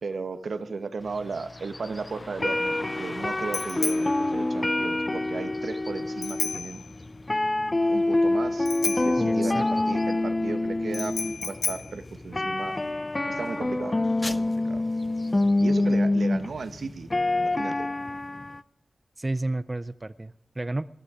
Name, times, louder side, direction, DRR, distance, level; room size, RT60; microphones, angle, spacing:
voice 1, 0.0-6.8 7.9-12.8 13.3-14.0 14.3-14.8 15.6-17.1 17.4-17.9, right 4 dB, 75° right, 9 dB, 1.1 m, -35 dB
sound 1, 1.1-18.6, left 2 dB, 25° left, 0.5 m, -26 dB
Bicycle bell, 1.9-13.0, left 5 dB, 85° left, 0.7 m, -36 dB
voice 2, 9.2-9.6 19.2-20.8, right 2 dB, 25° right, 14 dB, 0.4 m, -31 dB
19.0 x 12.0 x 4.9 m, 0.78 s
wide cardioid pair, 90°, 0 cm